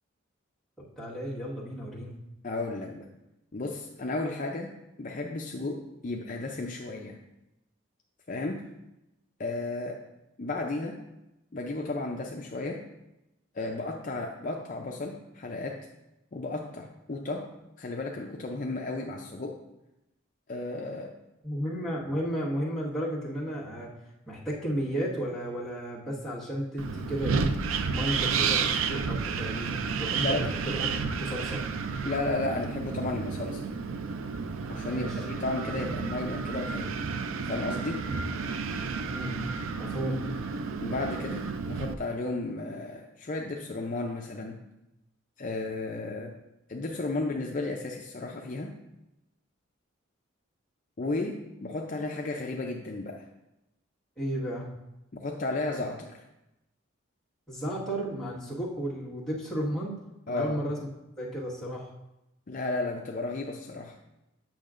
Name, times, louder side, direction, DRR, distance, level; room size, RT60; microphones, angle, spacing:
voice 1, 0.8-2.1 21.4-23.9 24.3-27.5 27.9-30.9 31.2-31.6 34.9-35.2 39.1-39.4 39.8-40.2 54.2-54.7 57.5-60.0 60.3-60.8 61.2-61.9, equal, 5° left, -9 dB, 1.5 m, -33 dB
voice 2, 2.4-3.1 3.5-4.7 5.0-7.2 8.3-8.7 9.4-10.0 10.4-11.0 11.5-12.8 13.5-15.8 16.3-17.5 17.8-19.6 20.5-21.1 30.2-30.5 32.0-33.7 34.7-37.0 37.4-38.0 40.8-44.6 45.4-46.3 46.7-48.7 51.0-53.3 55.1-56.2 60.3-60.6 62.5-64.0, left 2 dB, 40° left, 1 dB, 0.4 m, -33 dB
Wind, 26.8-41.9, right 5 dB, 80° right, 0.4 m, -31 dB
8.6 x 6.2 x 2.5 m, 0.92 s
head